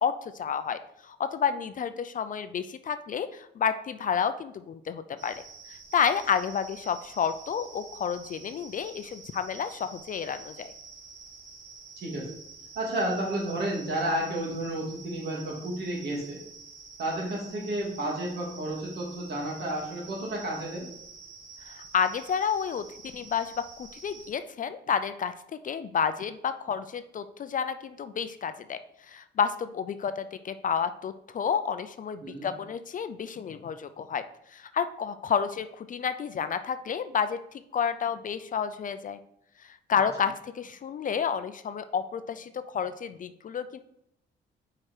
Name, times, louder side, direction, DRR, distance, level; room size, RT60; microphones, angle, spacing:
voice 1, 0.0-5.4 5.7-10.7 21.6-25.3 25.6-28.8 29.1-34.2 34.5-37.4 37.7-39.2 39.9-43.8, left 7 dB, 40° left, 11 dB, 0.4 m, -30 dB
sound 1, 5.2-24.3, right 4 dB, 80° right, 1.8 m, -48 dB
voice 2, 12.0-12.3 12.7-16.4 17.0-20.9 32.2-32.5 39.9-40.0, right 1 dB, 55° right, -2 dB, 2.4 m, -31 dB
4.8 x 4.8 x 4.4 m, 0.75 s
cardioid pair, 90°, 20 cm